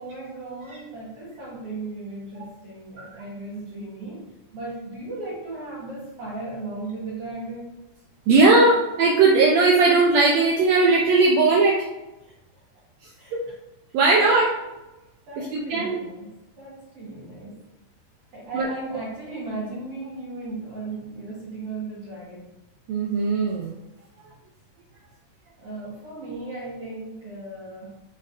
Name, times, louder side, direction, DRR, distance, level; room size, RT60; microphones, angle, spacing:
voice 1, 0.0-7.8 12.2-12.3 13.2-13.4 13.9-14.4 15.2-17.6 18.3-22.5 25.6-28.0, right 2 dB, 55° right, -8 dB, 1.9 m, -36 dB
voice 2, 8.3-11.9 13.3-13.4 13.9-14.5 15.4-16.0 18.5-18.7 22.9-23.7, right 3 dB, 85° right, -2 dB, 1.5 m, -18 dB
5.1 x 4.1 x 2.5 m, 0.99 s
omnidirectional pair, 3.6 m